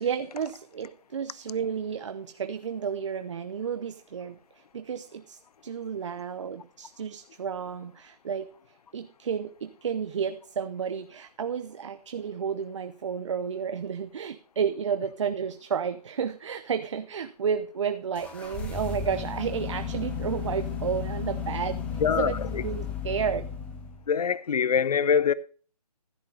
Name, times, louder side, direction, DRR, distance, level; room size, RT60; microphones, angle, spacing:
voice 1, 0.0-4.4 4.7-8.5 8.9-22.3 22.6-23.5, right 7 dB, 45° right, 0.8 m, -32 dB
sound 1, 18.1-24.0, left 6 dB, 5° left, 0.7 m, -34 dB
voice 2, 22.0-22.6 24.1-25.3, left 7 dB, 70° left, 0.6 m, -24 dB
14.5 x 8.0 x 3.9 m
hypercardioid pair, 160°, 21 cm